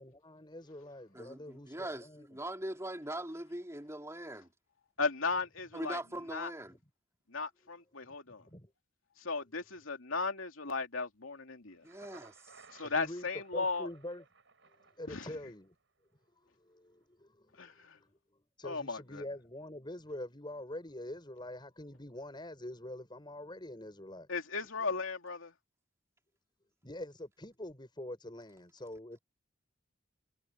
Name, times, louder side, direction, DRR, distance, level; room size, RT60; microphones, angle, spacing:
voice 1, 0.0-2.3 8.0-8.1 8.4-8.7 12.8-13.3 13.5-14.2 15.0-15.7 16.4-24.3 26.8-29.2, left 1 dB, 25° left, 6.4 m, -45 dB
voice 2, 1.1-4.5 5.7-6.8 11.8-12.6, right 1 dB, 15° right, 3.3 m, -41 dB
voice 3, 5.0-6.0 6.3-6.5 7.3-8.4 9.2-11.8 12.7-13.9 15.1-15.3 17.6-18.0 18.6-19.2 24.3-25.5, left 4 dB, 85° left, 2.8 m, -36 dB
Thunder, 11.7-15.7, right 4 dB, 65° right, 5.6 m, -60 dB
head